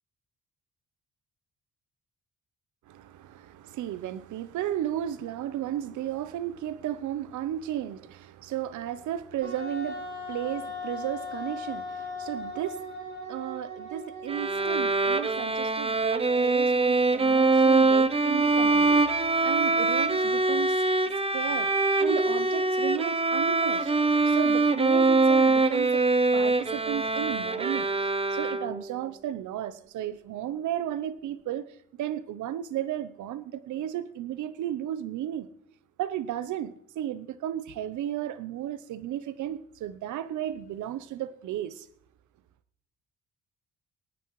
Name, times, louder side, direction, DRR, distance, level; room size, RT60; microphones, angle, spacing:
voice 1, 2.9-20.8 21.3-21.7 22.0-23.9 24.3-26.0 26.3-35.5 36.0-41.9, right 11 dB, 75° right, 0.8 m, -34 dB
Wind instrument woodwind instrument, 9.4-14.9, left 2 dB, 45° right, 5.1 m, -38 dB
Bowed string instrument, 14.3-28.9, right 3 dB, 20° right, 0.7 m, -23 dB
23.0 x 9.3 x 3.1 m
cardioid pair, 90°, 30 cm